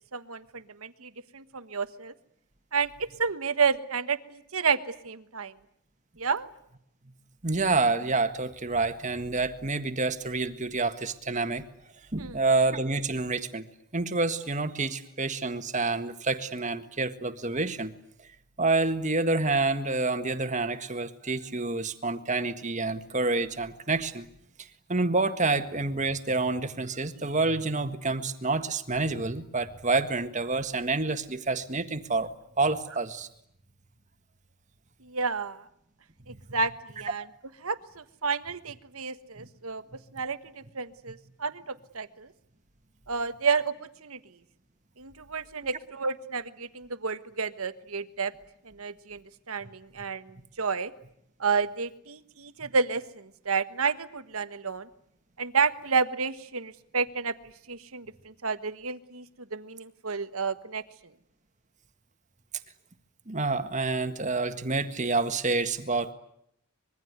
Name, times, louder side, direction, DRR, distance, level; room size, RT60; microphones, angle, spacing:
voice 1, 0.1-2.1 2.7-5.5 6.2-6.5 12.2-12.4 35.0-35.6 36.3-37.2 37.6-39.8 40.1-42.3 43.1-43.7 44.0-44.2 45.0-48.3 48.6-49.2 49.5-50.9 51.4-54.9 55.4-57.3 57.7-59.2 59.5-60.8, right 5 dB, 75° right, 12 dB, 1.4 m, -30 dB
voice 2, 7.4-11.7 12.1-13.6 13.9-17.9 18.6-24.3 24.9-33.3 36.3-36.4 39.4-39.5 52.6-52.7 63.3-66.1, right 3 dB, 35° right, 9 dB, 1.7 m, -28 dB
25.5 x 22.5 x 9.6 m, 0.72 s
head